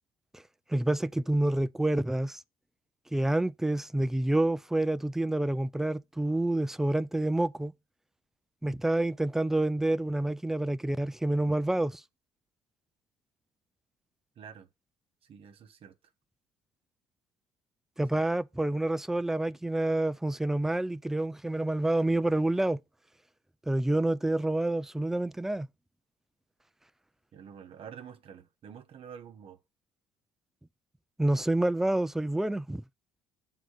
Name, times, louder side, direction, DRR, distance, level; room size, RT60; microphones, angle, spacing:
voice 1, 0.7-2.4 3.1-7.7 8.6-12.0 18.0-22.8 23.7-25.7 31.2-32.8, right 1 dB, 5° right, 0.3 m, -28 dB
voice 2, 14.4-14.7 15.3-15.9 18.1-18.2 27.3-29.6, right 8 dB, 55° right, 0.9 m, -48 dB
7.6 x 3.8 x 6.5 m
supercardioid pair, 85°, 12 cm